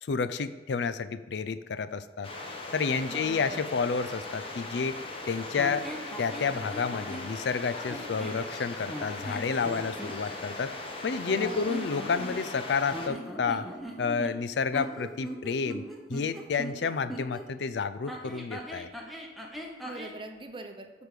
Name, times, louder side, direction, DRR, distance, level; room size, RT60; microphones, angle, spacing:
voice 1, 0.0-2.3 2.7-5.0 5.3-5.9 6.2-10.7 11.0-13.7 14.0-15.8 16.1-18.9, left 5 dB, 80° left, 12 dB, 0.4 m, -30 dB
sound 1, 2.2-13.1, left 2 dB, 30° left, 1.0 m, -39 dB
voice 2, 3.0-3.7 11.2-11.8 19.8-20.9, right 2 dB, 30° right, 6 dB, 0.7 m, -41 dB
sound 2, 5.6-7.3 7.9-8.4 8.9-10.2 11.3-12.6 12.9-17.4 18.1-20.2, equal, ahead, 0.8 m, -40 dB
7.9 x 5.2 x 6.6 m, 1.2 s
head